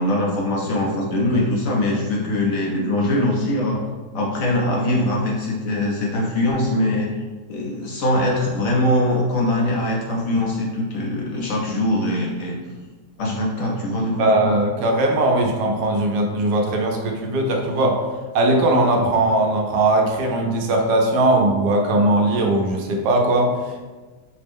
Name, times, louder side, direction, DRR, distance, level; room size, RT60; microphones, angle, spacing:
voice 1, 0.0-3.8 4.1-7.1 7.5-12.6 13.2-14.6, left 1 dB, 65° left, -2 dB, 0.9 m, -22 dB
voice 2, 14.2-18.0 18.3-23.9, right 2 dB, 80° right, 1 dB, 1.2 m, -19 dB
5.0 x 2.1 x 3.4 m, 1.3 s
omnidirectional pair, 1.8 m